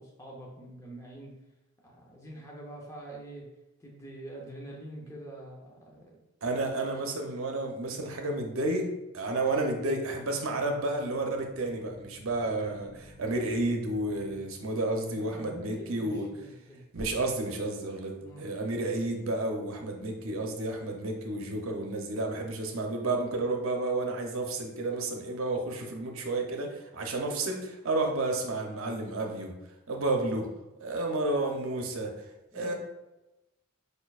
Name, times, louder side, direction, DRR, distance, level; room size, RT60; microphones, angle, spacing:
voice 1, 0.0-1.3 1.8-3.5 3.8-6.2 15.1-16.8 18.2-18.4 28.1-28.2 32.5-32.7, right 1 dB, 15° left, -3 dB, 0.8 m, -45 dB
voice 2, 6.4-16.3 16.9-29.6 29.9-30.5 30.8-32.2 32.5-32.7, right 2 dB, 70° right, 2 dB, 0.7 m, -31 dB
sound 1, 8.6-14.4 16.9-17.7, left 1 dB, 35° right, 1.6 m, -51 dB
5.0 x 4.4 x 2.4 m, 0.98 s
head